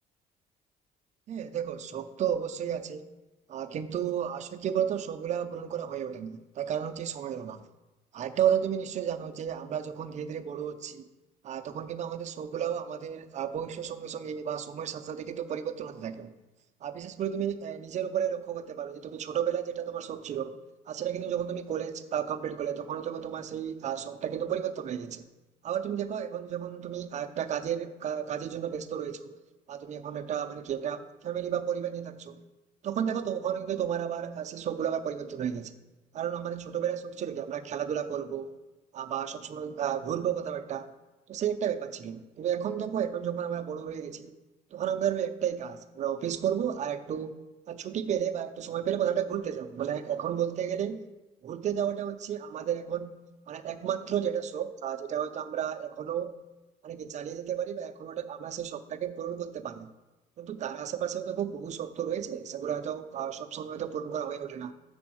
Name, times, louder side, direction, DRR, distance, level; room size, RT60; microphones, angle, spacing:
voice 1, 1.3-3.1 3.5-7.6 8.1-11.1 11.4-16.3 16.8-20.6 20.9-25.3 25.6-29.4 29.7-32.4 32.8-35.7 36.1-38.6 38.9-40.9 41.3-44.3 44.7-47.4 47.7-51.1 51.4-53.1 53.5-56.3 56.8-59.9 60.4-64.7, right 9 dB, 45° right, 0.5 m, -32 dB
7.0 x 3.4 x 6.2 m
cardioid pair, 110°, 17 cm